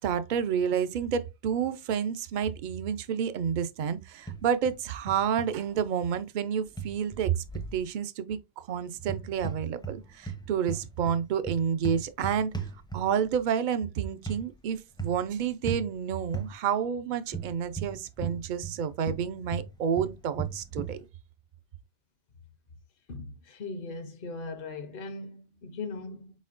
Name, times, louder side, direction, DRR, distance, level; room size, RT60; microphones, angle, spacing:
voice 1, 0.0-7.4 7.7-12.5 12.9-21.0, right 8 dB, 55° right, 0.6 m, -29 dB
sound 1, 4.3-4.8 5.1-5.5 6.8-7.8 9.0-10.0 10.2-13.3 14.3-14.4 15.0-15.3 15.7-15.9 16.3-16.5 17.3-18.8 19.0-21.0, right 5 dB, 5° left, 0.5 m, -36 dB
voice 2, 23.1-26.3, left 3 dB, 60° left, 0.9 m, -39 dB
4.4 x 4.2 x 2.4 m
omnidirectional pair, 1.1 m